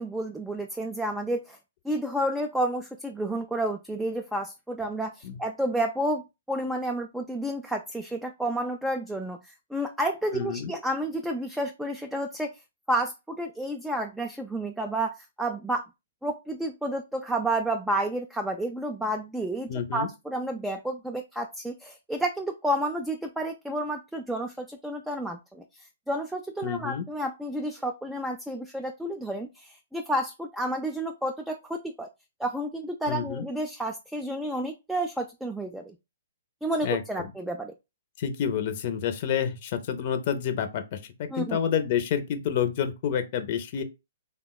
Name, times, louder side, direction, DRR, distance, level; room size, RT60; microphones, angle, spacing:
voice 1, 0.0-1.6 1.8-6.2 6.5-12.5 12.9-15.1 15.4-15.8 16.2-32.1 32.4-36.0 36.6-37.7 41.3-41.6, right 1 dB, 5° right, 0.3 m, -30 dB
voice 2, 10.3-10.7 19.7-20.1 26.6-27.0 33.1-33.4 36.8-37.0 38.2-43.8, left 8 dB, 45° left, 0.5 m, -29 dB
3.4 x 2.1 x 2.2 m
hypercardioid pair, 130°, 0 cm